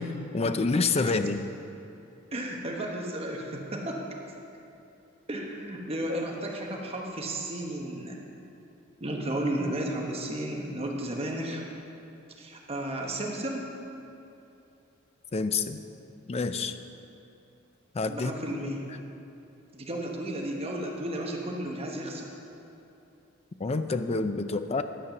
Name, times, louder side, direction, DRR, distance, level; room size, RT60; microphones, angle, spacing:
voice 1, 0.0-1.4 15.3-15.8 16.3-16.8 17.9-18.3 23.6-24.8, left 3 dB, 30° left, 9 dB, 0.4 m, -28 dB
voice 2, 2.3-4.0 5.3-8.2 9.0-11.6 12.4-13.7 18.1-18.8 19.7-22.3, right 1 dB, 30° right, 0 dB, 1.0 m, -33 dB
11.5 x 7.4 x 5.9 m, 2.8 s
head